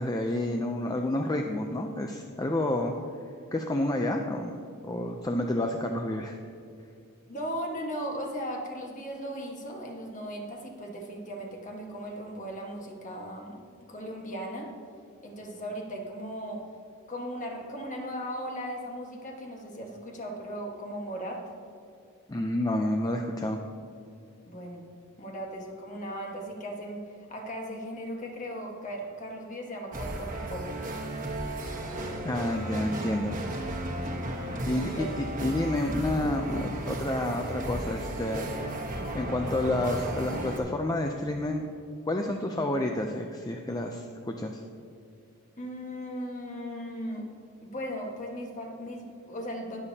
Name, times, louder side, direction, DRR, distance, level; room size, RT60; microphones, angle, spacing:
voice 1, 0.0-2.9 3.5-6.4 22.3-23.6 32.2-33.4 34.6-38.5 39.1-41.7 42.1-44.6, left 1 dB, 15° left, 3 dB, 0.4 m, -29 dB
voice 2, 7.3-13.6 13.9-14.7 15.2-16.6 17.1-21.5 24.5-24.8 25.2-30.7 34.1-34.3 34.7-35.1 45.6-47.2 47.6-49.8, equal, 35° left, 1 dB, 1.4 m, -37 dB
sound 1, 29.9-40.6, right 1 dB, 40° right, 1.2 m, -34 dB
20.5 x 7.0 x 2.8 m, 2.3 s
head